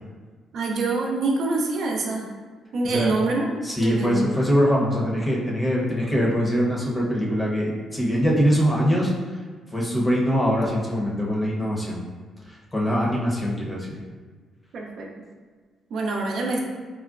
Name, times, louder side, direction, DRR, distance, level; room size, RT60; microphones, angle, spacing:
voice 1, 0.5-2.3 2.7-4.2 14.7-15.1 15.9-16.6, right 3 dB, 70° right, -1 dB, 0.5 m, -25 dB
voice 2, 3.6-9.1 9.7-12.0 12.7-14.0, equal, 20° left, -3 dB, 0.7 m, -23 dB
3.6 x 2.2 x 2.4 m, 1.5 s
cardioid pair, 90°, 0 cm